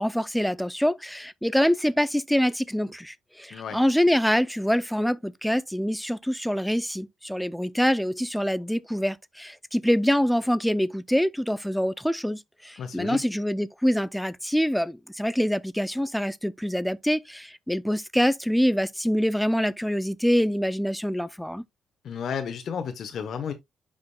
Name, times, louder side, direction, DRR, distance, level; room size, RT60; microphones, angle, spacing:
voice 1, 0.0-21.6, equal, ahead, 0.5 m, -25 dB
voice 2, 12.8-13.3 22.0-23.5, left 7 dB, 60° left, 1.0 m, -32 dB
11.0 x 5.0 x 2.2 m
cardioid pair, 90°, 0 cm